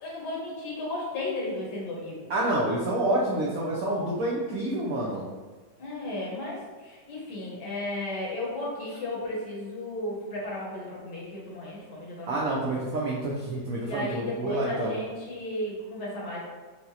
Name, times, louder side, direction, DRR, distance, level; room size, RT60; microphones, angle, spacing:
voice 1, 0.0-2.2 5.8-12.8 13.8-16.4, left 1 dB, 65° left, -4 dB, 1.4 m, -34 dB
voice 2, 2.3-5.3 12.3-15.0, right 1 dB, 85° right, -4 dB, 0.7 m, -28 dB
4.6 x 2.0 x 2.7 m, 1.4 s
omnidirectional pair, 2.0 m